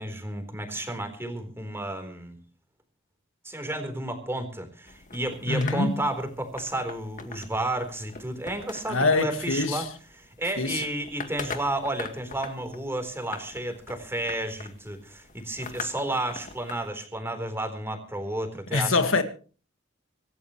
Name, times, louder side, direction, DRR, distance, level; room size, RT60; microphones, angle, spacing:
voice 1, 0.0-2.4 3.4-9.9 10.2-19.0, right 1 dB, 10° right, 4.0 m, -32 dB
sound 1, 4.9-16.9, left 4 dB, 40° left, 2.0 m, -43 dB
voice 2, 5.5-6.0 8.9-9.8 10.6-10.8 18.7-19.2, left 3 dB, 80° left, 1.9 m, -24 dB
26.0 x 14.0 x 3.2 m
head